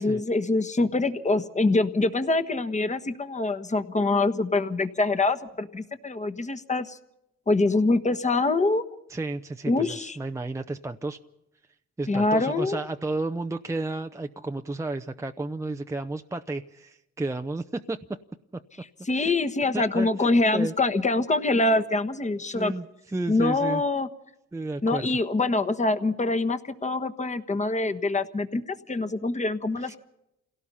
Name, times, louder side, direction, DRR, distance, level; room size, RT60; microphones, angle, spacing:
voice 1, 0.0-7.0 7.5-8.8 9.7-10.2 12.1-12.8 19.0-22.7 23.3-24.1 24.8-30.0, left 2 dB, 25° left, 9 dB, 1.4 m, -25 dB
voice 2, 9.1-11.2 12.0-18.2 18.5-18.6 19.1-19.3 19.7-20.7 22.5-22.9 23.1-23.8 24.5-25.1 29.8-30.0, right 2 dB, 10° right, 6 dB, 0.7 m, -32 dB
27.5 x 17.5 x 5.6 m, 0.88 s
cardioid pair, 90°, 30 cm